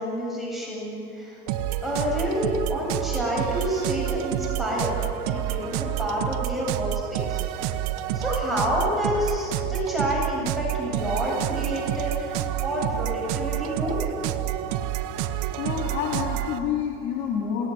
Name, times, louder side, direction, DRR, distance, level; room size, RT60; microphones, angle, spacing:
voice 1, 0.0-1.4 1.8-4.9 5.3-7.4 8.1-14.0, equal, ahead, -4 dB, 8.0 m, -28 dB
sound 1, 1.5-16.6, right 12 dB, 90° right, 1.4 m, -29 dB
voice 2, 15.6-17.7, left 7 dB, 70° left, -2 dB, 3.7 m, -28 dB
29.0 x 18.5 x 9.6 m, 2.6 s
cardioid pair, 125°, 19 cm